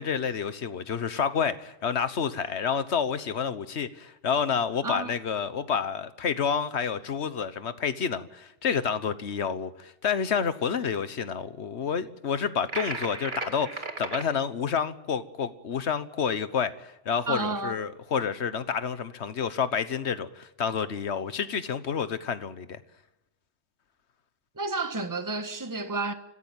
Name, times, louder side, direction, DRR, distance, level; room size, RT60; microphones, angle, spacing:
voice 1, 0.0-22.8, left 7 dB, 75° left, 1.4 m, -29 dB
sound 1, 12.7-14.3, right 3 dB, 45° right, 2.1 m, -35 dB
voice 2, 17.3-17.8 24.5-26.1, right 3 dB, 15° right, 1.3 m, -31 dB
25.5 x 15.0 x 9.0 m
omnidirectional pair, 1.2 m